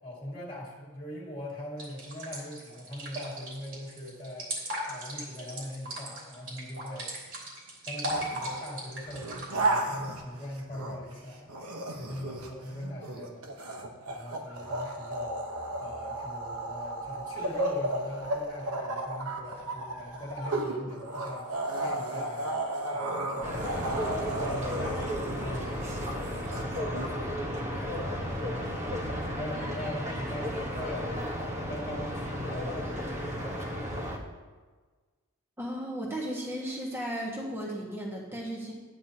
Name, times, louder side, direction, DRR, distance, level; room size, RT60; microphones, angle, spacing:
voice 1, 0.0-4.5 4.9-7.1 7.8-11.5 11.9-13.6 14.1-15.4 15.8-28.4 29.0-31.3 31.7-33.8, left 1 dB, 20° left, -5 dB, 2.1 m, -41 dB
sound 1, 1.8-9.5, right 1 dB, 60° right, 3.1 m, -37 dB
sound 2, 8.1-8.5 9.0-11.1 11.5-27.1, right 2 dB, 85° right, 1.1 m, -34 dB
sound 3, 23.4-34.2, equal, 35° right, 1.3 m, -34 dB
voice 2, 35.6-38.7, equal, 10° right, -4 dB, 1.4 m, -35 dB
12.0 x 9.9 x 2.9 m, 1.4 s
head